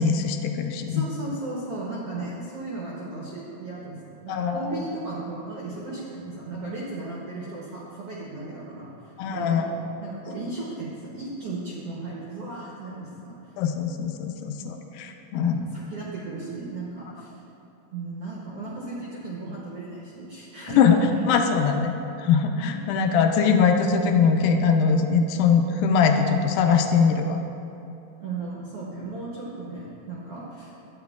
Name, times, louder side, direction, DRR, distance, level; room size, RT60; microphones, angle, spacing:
voice 1, 0.0-1.0 4.3-4.7 9.2-9.7 13.6-15.7 20.8-21.0 21.3-27.4, left 6 dB, 80° left, 5 dB, 2.2 m, -22 dB
voice 2, 0.8-13.4 15.0-17.4 17.9-21.2 22.7-22.9 28.2-30.7, right 2 dB, 85° right, -5 dB, 1.3 m, -35 dB
12.0 x 9.0 x 2.3 m, 2.9 s
omnidirectional pair, 4.3 m